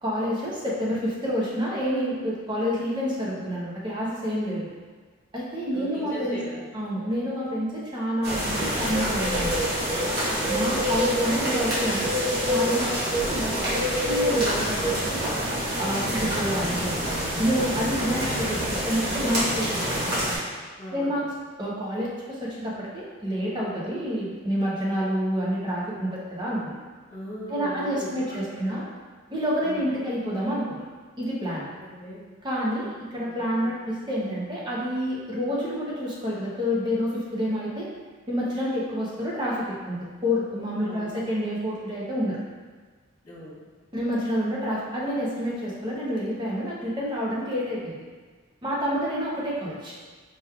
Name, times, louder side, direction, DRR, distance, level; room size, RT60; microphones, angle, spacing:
voice 1, 0.0-4.7 5.3-6.4 6.7-9.5 10.5-12.1 12.4-15.3 15.8-17.1 17.4-20.2 20.9-21.2 21.6-26.7 27.5-28.8 29.3-30.8 31.2-31.7 32.4-37.9 38.3-42.4 43.9-48.0 48.6-49.9, equal, 20° right, -6 dB, 0.7 m, -28 dB
voice 2, 5.7-6.7 10.7-11.0 20.8-21.3 27.1-28.8 29.6-30.0 31.8-32.2 33.1-33.6 40.8-41.2 43.2-43.6, equal, 35° left, -10 dB, 1.5 m, -40 dB
sound 1, 8.2-20.4, equal, 45° right, 1.2 m, -26 dB
4.6 x 3.0 x 2.3 m, 1.4 s
head